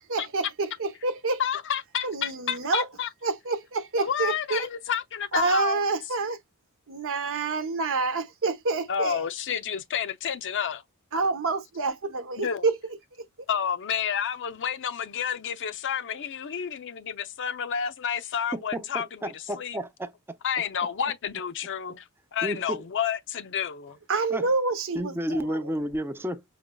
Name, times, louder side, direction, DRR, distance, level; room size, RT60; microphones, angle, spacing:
voice 1, 0.1-1.4 2.0-2.9 3.2-4.7 5.3-6.4 6.9-9.3 11.1-12.8 24.1-25.6, right 3 dB, 60° right, 0.9 m, -28 dB
voice 2, 1.4-3.1 4.0-5.8 8.9-10.8 12.4-12.7 13.5-19.8 20.4-24.0, left 8 dB, 55° left, 0.5 m, -30 dB
voice 3, 18.5-20.4 22.4-22.8 24.3-24.5 24.9-26.4, right 1 dB, 10° right, 0.5 m, -31 dB
5.1 x 3.0 x 2.2 m
head